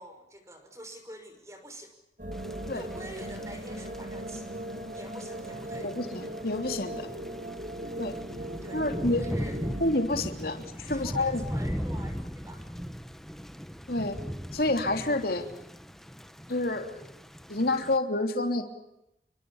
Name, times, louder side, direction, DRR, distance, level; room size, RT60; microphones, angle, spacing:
voice 1, 0.0-1.9 2.6-4.6 4.9-5.9 8.3-8.8 9.1-9.8 10.8-12.7, right 1 dB, 15° right, 7 dB, 6.0 m, -47 dB
sound 1, 2.2-10.0, right 1 dB, 45° right, 3.6 m, -38 dB
Thunder / Rain, 2.3-18.0, equal, ahead, 1.2 m, -39 dB
voice 2, 5.8-7.1 8.0-8.2 8.7-9.3 9.8-11.4 13.9-14.2 14.5-15.5 16.5-17.1 17.5-18.6, left 2 dB, 55° left, 5 dB, 3.3 m, -28 dB
29.0 x 24.5 x 7.3 m, 0.86 s
head